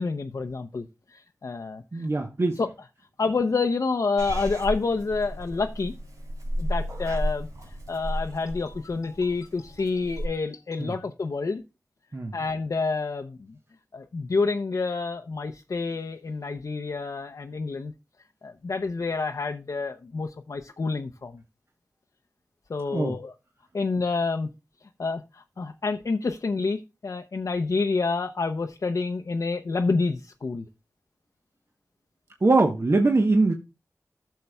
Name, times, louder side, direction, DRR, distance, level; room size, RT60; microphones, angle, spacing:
voice 1, 0.0-2.1 2.6-2.7 3.2-5.9 6.6-7.5 7.9-11.6 12.3-13.5 13.9-17.9 18.4-21.4 22.7-23.3 23.7-24.5 25.0-30.7, left 4 dB, 70° left, 0.6 m, -28 dB
voice 2, 1.9-2.6 10.8-10.9 12.1-12.3 22.9-23.1 32.4-33.5, right 3 dB, 50° right, 1.0 m, -22 dB
Purr / Meow, 4.2-10.3, equal, 85° right, 3.6 m, -33 dB
13.5 x 6.6 x 2.3 m
wide cardioid pair, 50°, 6 cm